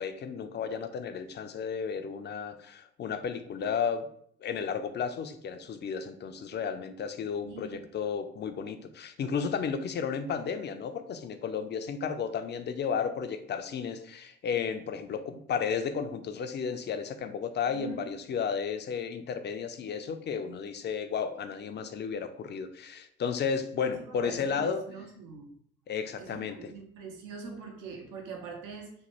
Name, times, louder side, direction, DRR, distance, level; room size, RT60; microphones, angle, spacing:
voice 1, 0.0-4.1 4.4-24.8 25.9-26.7, left 6 dB, 35° left, 8 dB, 0.4 m, -33 dB
voice 2, 7.4-7.8 17.7-18.1 23.9-25.5 26.2-28.9, right 4 dB, 70° right, 2 dB, 0.7 m, -43 dB
3.0 x 2.1 x 2.9 m, 0.63 s
hypercardioid pair, 60°, 33 cm